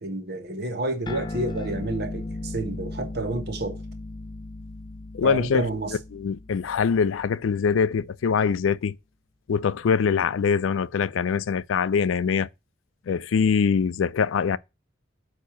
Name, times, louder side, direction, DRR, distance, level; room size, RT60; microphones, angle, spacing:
voice 1, 0.0-3.8 5.2-5.9, right 2 dB, 55° right, 1.3 m, -30 dB
sound 1, 1.1-7.9, left 2 dB, 25° left, 0.5 m, -37 dB
voice 2, 5.1-9.0 9.5-12.5 13.1-14.6, left 6 dB, 90° left, 0.4 m, -23 dB
8.4 x 2.8 x 5.8 m
head